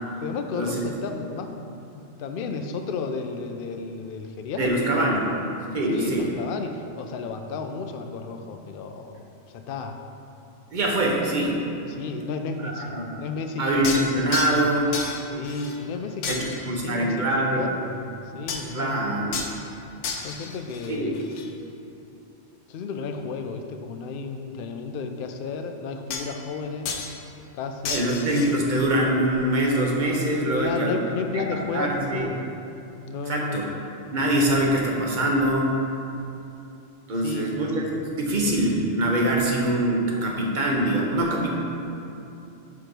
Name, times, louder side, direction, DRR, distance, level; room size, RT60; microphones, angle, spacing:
voice 1, 0.2-1.5 1.9-5.2 5.9-9.2 9.5-10.0 11.9-13.9 14.5-14.6 15.2-18.0 18.3-19.2 20.2-21.2 22.7-27.0 27.5-28.0 30.6-32.5 33.1-33.6 37.2-37.7, left 4 dB, 60° left, 5 dB, 0.6 m, -33 dB
voice 2, 4.6-5.2 5.7-6.3 10.7-11.6 12.6-13.0 13.6-14.9 16.3-17.6 18.7-19.3 20.9-21.1 27.9-31.0 31.3-31.4 31.7-32.3 33.3-33.7 34.1-35.8 37.1-37.8 38.2-41.5, right 1 dB, 45° right, -1 dB, 1.0 m, -23 dB
sound 1, 13.8-14.7 14.9-15.9 16.2-16.8 18.5-18.8 19.3-19.6 20.0-21.5 26.1-26.6 26.9-27.2 27.8-28.6, left 4 dB, 75° left, 1.0 m, -32 dB
6.0 x 4.6 x 5.1 m, 2.8 s
omnidirectional pair, 1.3 m